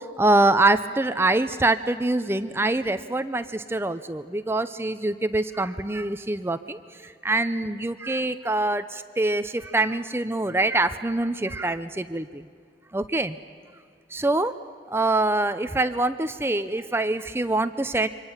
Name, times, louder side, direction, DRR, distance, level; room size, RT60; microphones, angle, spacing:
voice 1, 0.0-12.4 12.9-13.4 14.1-14.5 14.9-18.1, right 2 dB, 15° right, 11 dB, 0.5 m, -24 dB
28.5 x 25.0 x 7.2 m, 2.3 s
head